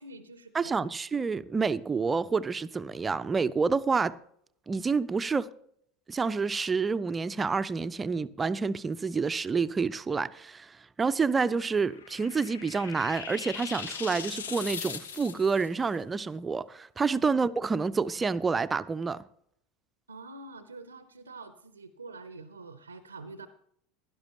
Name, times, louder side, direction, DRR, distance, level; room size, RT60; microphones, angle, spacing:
voice 1, 0.0-0.9 17.1-17.3 20.1-23.5, right 3 dB, 80° right, 0.7 m, -46 dB
voice 2, 0.5-4.1 4.7-5.5 6.1-19.2, right 4 dB, 20° right, 0.5 m, -28 dB
sound 1, 11.5-15.7, left 7 dB, 70° left, 0.8 m, -40 dB
16.5 x 12.0 x 2.9 m
figure-of-eight pair, 75°, 0 cm